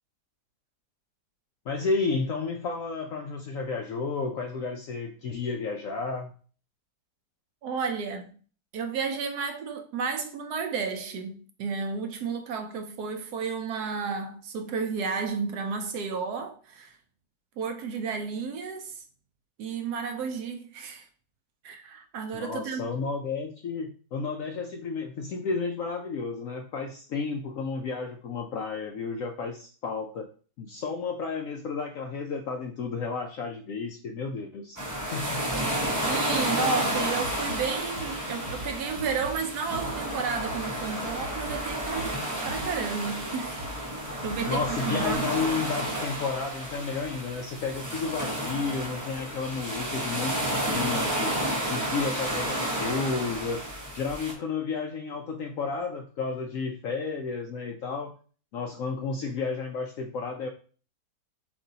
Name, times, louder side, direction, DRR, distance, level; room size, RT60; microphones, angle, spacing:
voice 1, 1.7-6.3 22.3-30.3 30.6-34.8 35.1-35.4 44.5-51.3 51.6-53.7 53.9-58.1 58.5-60.5, left 4 dB, 70° left, 0.8 m, -32 dB
voice 2, 7.6-8.4 8.7-17.0 17.6-19.0 19.6-21.1 21.6-22.8 36.1-42.2 42.4-43.6 44.2-45.3, right 5 dB, 70° right, 1.0 m, -32 dB
sound 1, 34.8-54.3, right 1 dB, 15° right, 0.6 m, -31 dB
sound 2, 37.2-45.1, left 1 dB, 45° right, 1.2 m, -43 dB
7.3 x 2.6 x 2.8 m
omnidirectional pair, 1.9 m